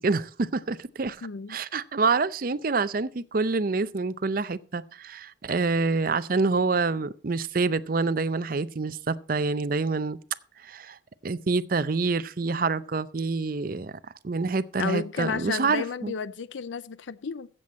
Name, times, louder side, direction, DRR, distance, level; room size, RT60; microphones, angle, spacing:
voice 1, 0.0-10.2 10.6-11.0 11.2-16.1, right 4 dB, 50° right, 0.5 m, -27 dB
voice 2, 1.2-1.6 14.8-17.5, left 5 dB, 80° left, 0.5 m, -32 dB
15.0 x 7.7 x 4.2 m
head